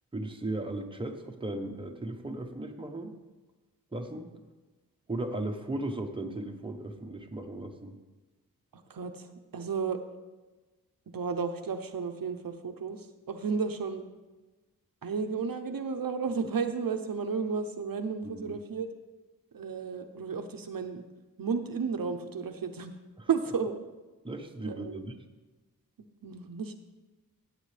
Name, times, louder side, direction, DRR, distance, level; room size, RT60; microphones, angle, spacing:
voice 1, 0.1-3.1 3.9-4.3 5.1-7.9 18.2-18.6 23.2-23.3 24.2-25.1, right 2 dB, 15° right, 3 dB, 0.9 m, -36 dB
voice 2, 8.7-10.0 11.1-14.1 15.0-18.9 19.5-21.0 21.4-22.9 23.3-23.8 24.6-25.0 26.2-26.7, right 5 dB, 70° right, 6 dB, 0.7 m, -33 dB
15.0 x 8.4 x 3.3 m, 1.2 s
wide cardioid pair, 110°, 35 cm